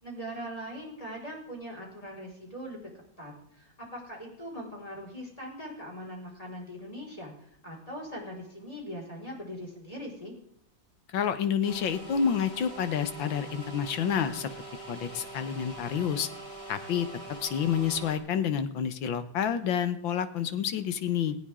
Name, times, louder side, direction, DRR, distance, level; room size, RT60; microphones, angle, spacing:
voice 1, 0.0-2.8 3.2-10.3, equal, 20° left, -2 dB, 5.4 m, -41 dB
voice 2, 11.1-14.5 14.9-16.3 16.7-17.1 17.4-21.4, left 8 dB, 85° left, 11 dB, 1.9 m, -29 dB
sound 1, 11.6-18.2, right 2 dB, 65° left, 4.9 m, -43 dB
20.0 x 16.0 x 3.8 m, 0.71 s
omnidirectional pair, 2.0 m